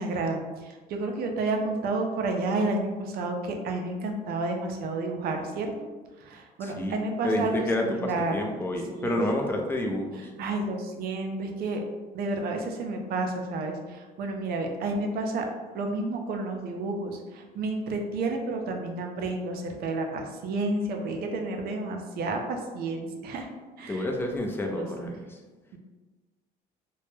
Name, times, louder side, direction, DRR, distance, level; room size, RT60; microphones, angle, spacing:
voice 1, 0.0-5.7 6.2-8.4 8.9-9.2 10.4-11.8 12.1-15.5 15.7-23.5 23.8-24.1 24.8-24.9, right 2 dB, 65° right, 3 dB, 0.5 m, -30 dB
voice 2, 6.6-6.9 7.2-10.3 23.9-25.4, left 1 dB, 15° left, 2 dB, 0.4 m, -29 dB
2.2 x 2.0 x 3.0 m, 1.3 s
cardioid pair, 110°, 17 cm